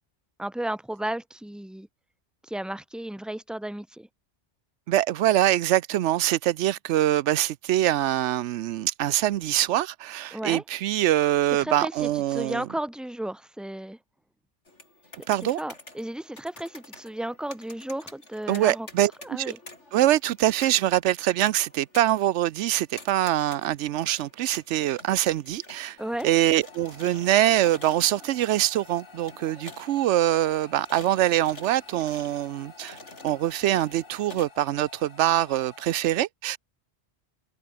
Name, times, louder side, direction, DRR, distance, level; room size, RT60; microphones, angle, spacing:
voice 1, 0.4-1.9 2.5-4.1 10.3-10.6 11.6-14.0 15.4-18.9 19.2-19.6 26.0-26.3, right 1 dB, ahead, 1.0 m, -34 dB
voice 2, 4.9-12.7 15.3-15.6 18.5-19.5 19.9-26.0 26.2-33.0 33.2-36.6, right 13 dB, 85° right, 0.9 m, -24 dB
sound 1, 14.7-34.4, left 2 dB, 90° left, 5.5 m, -48 dB
sound 2, 26.0-36.0, left 4 dB, 50° left, 1.8 m, -50 dB
omnidirectional pair, 1.2 m